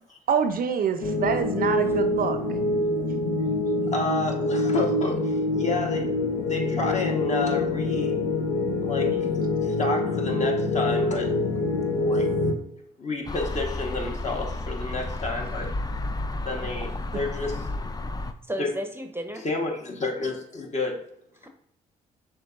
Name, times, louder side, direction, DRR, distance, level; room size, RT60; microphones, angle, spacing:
voice 1, 0.3-2.4 9.0-9.3 17.1-17.2, right 7 dB, 50° right, 9 dB, 0.5 m, -26 dB
sound 1, 1.0-12.5, left 2 dB, 80° left, 0.6 m, -25 dB
voice 2, 3.9-8.2 8.8-9.2 9.6-11.3 12.0-12.3 13.0-15.7 16.4-17.7 18.6-18.7 19.4-21.1, left 3 dB, 40° left, 1 dB, 1.3 m, -30 dB
voice 3, 10.9-11.3 18.5-19.4 21.4-21.5, equal, 10° right, 6 dB, 0.7 m, -34 dB
sound 2, 13.3-18.3, left 2 dB, 20° left, 0.4 m, -32 dB
6.1 x 3.3 x 2.5 m, 0.72 s
hypercardioid pair, 45°, 19 cm